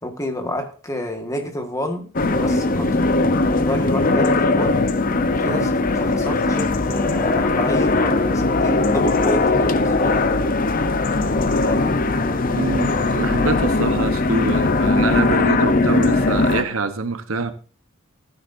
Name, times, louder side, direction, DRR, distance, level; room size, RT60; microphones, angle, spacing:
voice 1, 0.0-3.1 3.4-4.8 5.3-10.3 11.3-13.3, left 1 dB, 15° left, 1.6 m, -30 dB
sound 1, 2.1-16.6, left 3 dB, 40° left, 0.7 m, -19 dB
voice 2, 12.5-17.5, right 3 dB, 75° right, 1.0 m, -25 dB
15.0 x 9.5 x 2.6 m
head